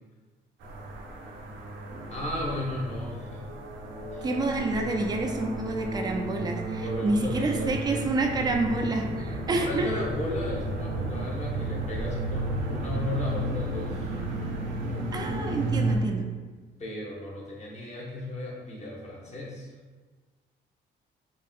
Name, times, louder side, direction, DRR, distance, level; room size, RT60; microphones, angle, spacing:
sound 1, 0.6-16.0, right 1 dB, 75° right, 0.5 m, -33 dB
voice 1, 2.1-3.4 4.1-4.3 6.8-7.8 9.6-14.2 16.8-19.7, left 1 dB, 35° left, -4 dB, 0.9 m, -35 dB
voice 2, 4.2-9.9 15.1-16.3, right 2 dB, 20° right, 2 dB, 0.3 m, -28 dB
2.9 x 2.6 x 2.4 m, 1.4 s
cardioid pair, 90°, 20 cm